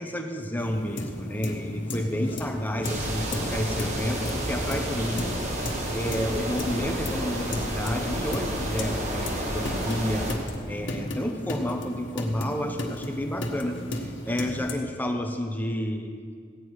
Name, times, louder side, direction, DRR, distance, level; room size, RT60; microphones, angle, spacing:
voice 1, 0.0-16.1, equal, 10° left, 4 dB, 0.8 m, -30 dB
sound 1, 0.6-14.7, left 1 dB, 70° left, 1.5 m, -35 dB
sound 2, 2.8-10.3, right 1 dB, 35° right, 1.7 m, -31 dB
15.5 x 9.9 x 4.8 m, 2.1 s
head